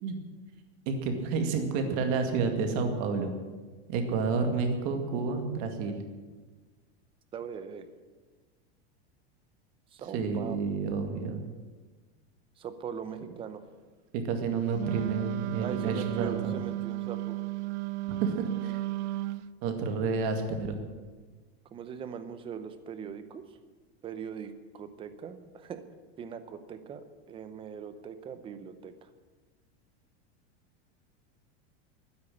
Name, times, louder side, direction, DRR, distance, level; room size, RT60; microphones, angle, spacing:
voice 1, 0.9-3.3 3.9-5.9 10.1-11.4 14.1-16.6 18.2-18.8 19.6-20.8, right 4 dB, 45° right, 5 dB, 2.2 m, -30 dB
voice 2, 7.3-7.9 9.9-10.8 12.6-13.6 15.6-17.4 21.7-23.6 24.0-25.8 26.2-29.1, right 7 dB, 15° right, 10 dB, 0.7 m, -41 dB
Wind instrument woodwind instrument, 14.7-19.5, right 16 dB, 85° right, 0.6 m, -33 dB
12.5 x 9.7 x 9.9 m, 1.4 s
supercardioid pair, 175°, 33 cm